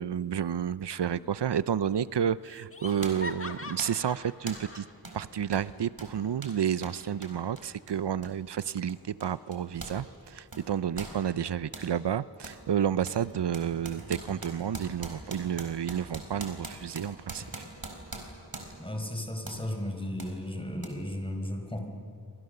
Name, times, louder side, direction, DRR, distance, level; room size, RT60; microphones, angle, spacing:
voice 1, 0.0-4.9 5.1-17.4, right 8 dB, 90° right, 17 dB, 0.6 m, -30 dB
Laughter, 1.1-1.7 1.9-2.0 2.4-4.9, left 3 dB, 35° left, 1.5 m, -43 dB
sound 1, 2.2-2.3 3.0-3.3 3.8-4.1 4.5-4.7 5.0-5.2 5.5-10.0 10.3-11.9 12.4-12.6 13.1-18.9 19.5-19.7 20.2-20.3 20.8-20.9, right 2 dB, 60° right, 4.2 m, -43 dB
voice 2, 18.8-21.8, left 1 dB, 15° left, 3 dB, 4.6 m, -35 dB
28.0 x 26.0 x 6.7 m, 2.5 s
wide cardioid pair, 50°, 40 cm